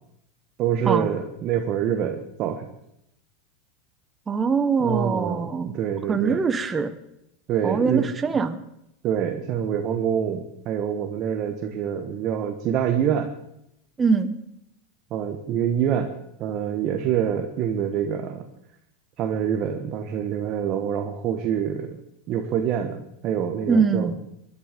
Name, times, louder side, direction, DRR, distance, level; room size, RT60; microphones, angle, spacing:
voice 1, 0.6-2.7 4.8-6.4 7.5-8.0 9.0-13.3 15.1-16.1 16.4-18.4 19.2-22.0 22.3-24.1, right 9 dB, 35° right, 4 dB, 1.4 m, -26 dB
voice 2, 4.3-5.8 6.1-6.9 7.6-8.6 14.0-14.4 23.7-24.2, right 5 dB, 15° right, 9 dB, 1.2 m, -23 dB
23.5 x 11.0 x 5.3 m, 0.81 s
supercardioid pair, 155°, 0 cm